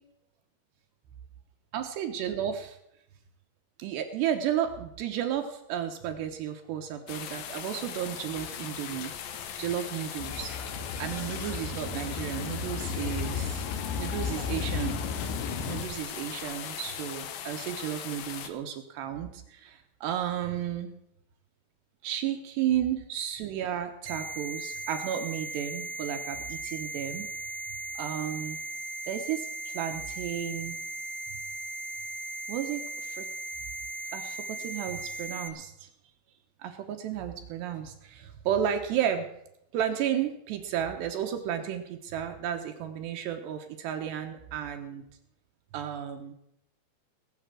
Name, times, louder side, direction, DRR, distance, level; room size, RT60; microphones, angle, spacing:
voice 1, 1.7-2.8 3.8-9.1 9.6-10.6 11.0-13.6 14.0-15.0 15.7-20.9 22.0-27.3 28.0-28.6 29.1-30.8 32.5-33.3 34.1-35.9 36.6-39.3 39.7-45.0 45.7-46.3, right 10 dB, 75° right, 5 dB, 3.1 m, -33 dB
sound 1, 7.1-18.5, left 9 dB, 65° left, 2.4 m, -39 dB
sound 2, 10.2-15.8, left 6 dB, 85° left, 4.3 m, -34 dB
sound 3, 24.1-35.5, right 2 dB, 60° right, 2.3 m, -37 dB
19.5 x 7.8 x 7.6 m, 0.78 s
omnidirectional pair, 5.1 m